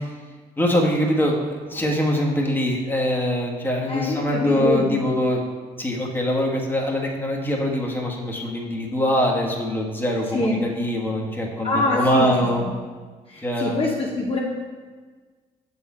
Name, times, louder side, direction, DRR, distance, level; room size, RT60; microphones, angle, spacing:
voice 1, 0.6-5.4 5.8-12.6 13.4-13.8, equal, 10° left, -2 dB, 1.4 m, -23 dB
voice 2, 3.9-5.0 10.3-10.6 11.6-12.3 13.3-14.4, left 2 dB, 35° left, -3 dB, 1.0 m, -24 dB
6.7 x 4.2 x 4.3 m, 1.4 s
supercardioid pair, 55°, 17 cm